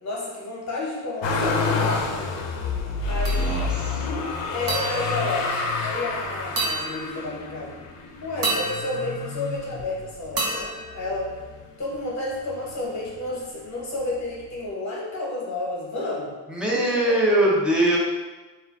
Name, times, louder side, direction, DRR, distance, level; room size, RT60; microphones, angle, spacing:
voice 1, 0.0-2.2 3.0-3.8 4.5-7.7 8.2-11.3 11.8-16.6 16.9-17.2, left 2 dB, 40° left, -4 dB, 0.9 m, -31 dB
Motor vehicle (road), 1.2-10.3 10.9-11.8 12.0-13.1 14.2-14.3, left 3 dB, 80° left, 0.5 m, -28 dB
voice 2, 3.3-4.1 16.5-18.0, right 1 dB, ahead, -5 dB, 0.5 m, -22 dB
sound 1, 3.3-3.9 4.7-6.1 6.6-7.6 8.4-9.9 10.4-11.8, right 2 dB, 55° right, 0.8 m, -31 dB
2.5 x 2.1 x 3.5 m, 1.2 s
cardioid pair, 115°, 43 cm